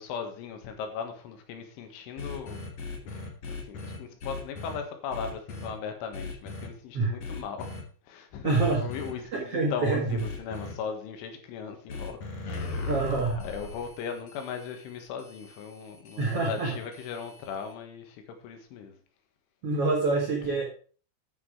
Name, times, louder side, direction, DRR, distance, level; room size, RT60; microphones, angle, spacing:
voice 1, 0.0-2.6 2.9-7.8 8.1-8.5 8.8-12.9 13.4-19.0 20.4-20.6, left 6 dB, 80° left, 5 dB, 3.9 m, -38 dB
sound 1, 2.2-4.8 5.1-5.7 6.1-6.7 7.2-7.8 8.5-9.1 10.2-10.7 11.9-17.7, left 3 dB, 60° left, 1.8 m, -39 dB
voice 2, 8.4-8.8 9.3-10.2 12.9-13.4 16.2-16.8 19.6-20.6, right 3 dB, 85° right, -1 dB, 1.3 m, -26 dB
9.5 x 6.4 x 4.8 m, 0.42 s
omnidirectional pair, 5.5 m